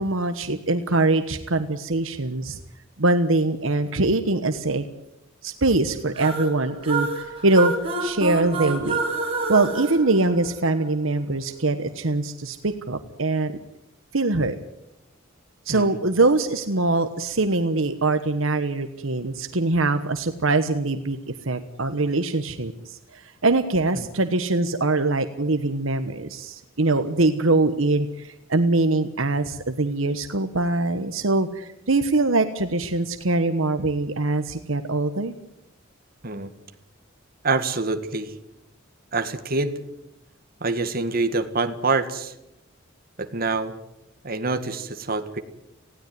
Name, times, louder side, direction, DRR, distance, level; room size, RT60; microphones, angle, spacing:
voice 1, 0.0-2.6 3.0-4.8 5.4-7.7 8.0-9.0 9.5-13.6 14.1-14.6 15.7-21.2 21.5-23.0 23.4-35.3, right 2 dB, 70° right, 8 dB, 1.3 m, -23 dB
sound 1, 6.1-10.9, right 3 dB, 25° right, 4.8 m, -28 dB
voice 2, 37.4-38.3 39.1-39.7 40.6-42.3 43.2-43.7 44.2-45.4, right 3 dB, 45° right, 8 dB, 1.8 m, -26 dB
19.0 x 16.5 x 9.4 m, 0.85 s
head